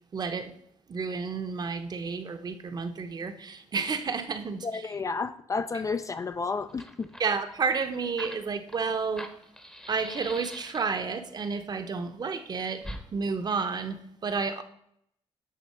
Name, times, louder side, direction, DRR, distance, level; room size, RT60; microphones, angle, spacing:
voice 1, 0.1-0.6 0.9-4.9 7.2-9.3 9.9-12.9 13.1-14.6, right 5 dB, 35° right, 0.8 m, -31 dB
voice 2, 4.6-7.1, left 4 dB, 30° left, 0.4 m, -31 dB
Fire, 6.3-6.4 6.6-11.2 12.8-13.0, equal, 5° left, 0.8 m, -43 dB
9.4 x 4.0 x 6.7 m
wide cardioid pair, 155°, 12 cm